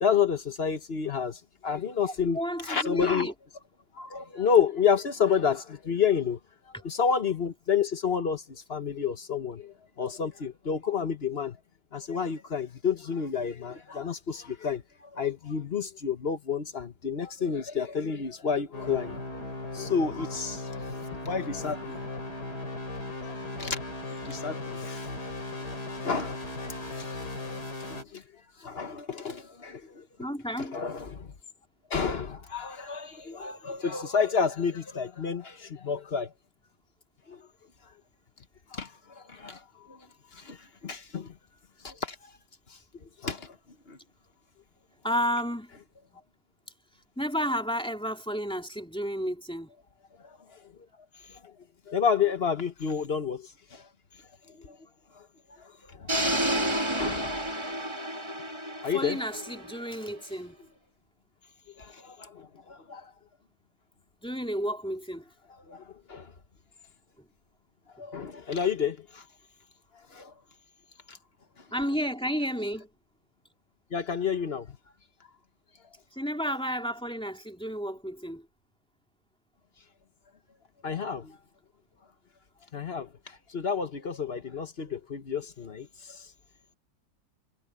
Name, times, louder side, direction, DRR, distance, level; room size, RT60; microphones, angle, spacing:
voice 1, 0.0-3.3 4.0-6.4 6.8-11.6 11.9-19.2 19.7-20.8 21.2-22.2 23.2-23.8 24.2-25.1 25.6-25.8 26.0-26.4 26.7-27.6 27.9-28.2 28.6-30.1 30.6-31.3 31.9-36.3 37.3-37.4 38.7-39.6 39.9-40.0 40.3-40.6 40.8-41.3 41.8-42.1 43.2-43.5 43.9-44.0 50.2-50.3 51.3-51.5 51.9-53.8 54.6-54.8 55.2-55.3 55.6-56.2 57.0-57.4 58.8-59.2 61.8-63.1 65.7-66.3 68.0-69.2 70.1-70.3 71.1-71.2 73.9-74.7 80.8-81.4 82.7-86.2, left 6 dB, 40° left, 1.1 m, -30 dB
voice 2, 2.2-3.3 30.2-30.8 45.0-45.7 47.2-49.7 58.9-60.6 64.2-65.2 71.7-72.9 76.1-78.5, equal, 5° left, 2.5 m, -31 dB
sound 1, 18.7-28.0, left 2 dB, 60° left, 4.6 m, -37 dB
sound 2, 56.1-60.1, right 1 dB, 15° right, 1.9 m, -30 dB
omnidirectional pair, 2.0 m